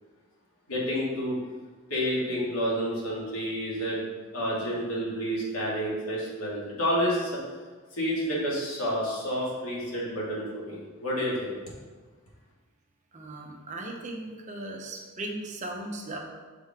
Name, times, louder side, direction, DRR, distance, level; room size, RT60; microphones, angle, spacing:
voice 1, 0.7-1.4 1.9-4.0 4.3-7.3 8.0-11.5, equal, 85° left, -5 dB, 2.1 m, -29 dB
voice 2, 13.1-16.2, right 2 dB, 35° right, 1 dB, 0.8 m, -37 dB
6.5 x 5.0 x 3.6 m, 1.4 s
head